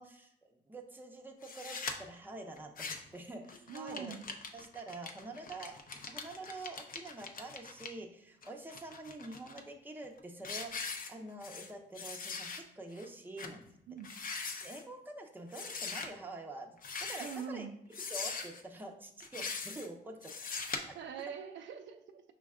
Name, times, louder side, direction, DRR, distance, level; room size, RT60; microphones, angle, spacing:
voice 1, 0.0-4.2 4.5-13.7 14.6-17.7 18.1-20.6 20.9-21.0, right 2 dB, 10° right, 2 dB, 0.6 m, -47 dB
sound 1, 1.4-1.9 2.6-3.2 3.5-7.9 8.4-9.6 10.0-10.2 10.4-11.7 11.9-12.6 13.0-13.1 13.4-13.5 14.0-14.8 15.5-16.1 16.8-17.5 17.9-18.6 19.2-19.9 20.2-20.8, left 4 dB, 45° left, 0.6 m, -41 dB
voice 2, 3.7-4.2 13.9-14.1 17.2-17.8 20.9-22.2, right 6 dB, 70° right, 6 dB, 0.5 m, -43 dB
5.1 x 2.2 x 3.5 m, 0.78 s
cardioid pair, 90°, 20 cm